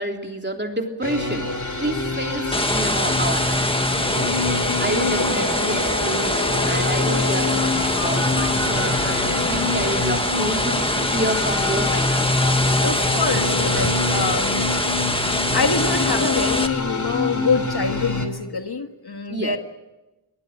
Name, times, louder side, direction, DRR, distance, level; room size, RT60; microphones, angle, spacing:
voice 1, 0.0-1.5 1.8-4.3 4.8-12.6 19.3-19.6, right 1 dB, 25° right, 3 dB, 3.6 m, -29 dB
sound 1, 1.0-18.3, left 3 dB, 40° left, 3.0 m, -26 dB
sound 2, 2.5-16.7, left 1 dB, 10° left, 1.8 m, -24 dB
sound 3, 4.0-4.1 4.3-8.9, left 2 dB, 85° left, 3.9 m, -33 dB
voice 2, 4.9-5.3 12.8-14.7 15.3-19.6, left 4 dB, 55° left, 6 dB, 1.7 m, -25 dB
24.0 x 19.0 x 9.0 m, 1.0 s
wide cardioid pair, 55°, 45 cm